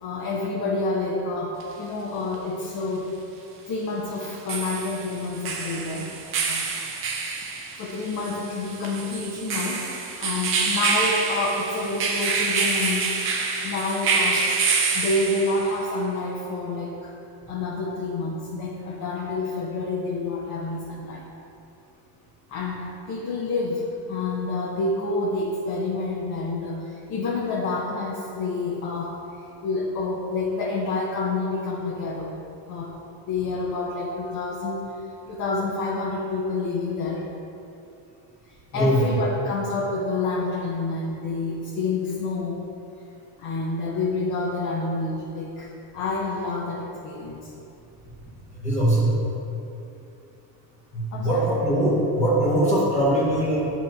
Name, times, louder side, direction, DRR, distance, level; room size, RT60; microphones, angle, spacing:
voice 1, 0.0-3.1 3.7-6.1 6.4-6.6 7.8-9.9 10.2-13.1 13.6-17.1 17.5-21.2 22.5-32.4 32.7-32.9 33.3-34.8 35.3-37.3 38.7-42.6 43.4-47.5 51.1-51.6, left 3 dB, 45° left, -3 dB, 0.8 m, -28 dB
sound 1, 1.6-1.7 4.2-15.8, right 4 dB, 30° right, 0.4 m, -27 dB
voice 2, 38.7-39.0 48.5-49.1 50.9-53.7, right 1 dB, 15° left, -8 dB, 1.3 m, -21 dB
8.5 x 3.0 x 5.2 m, 2.8 s
cardioid pair, 160°, 46 cm